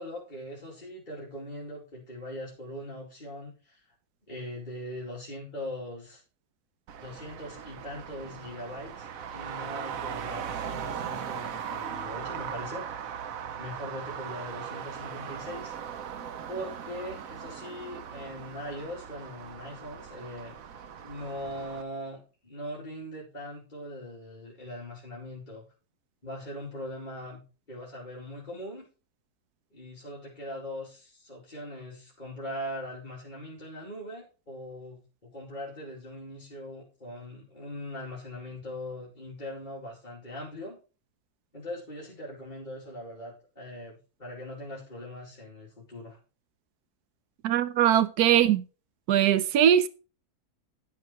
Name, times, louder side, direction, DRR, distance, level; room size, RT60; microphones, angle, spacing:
voice 1, 0.0-3.8 4.3-6.2 7.0-12.8 13.6-15.8 16.5-20.5 21.0-25.6 26.2-27.4 27.7-28.9 29.7-40.8 41.5-46.2, left 1 dB, 30° left, 2.9 m, -41 dB
Traffic noise roadway noise, 6.9-21.8, right 8 dB, 65° right, 1.2 m, -39 dB
voice 2, 47.4-48.6 49.1-49.9, right 10 dB, 85° right, 1.2 m, -21 dB
10.5 x 7.4 x 4.5 m
omnidirectional pair, 1.6 m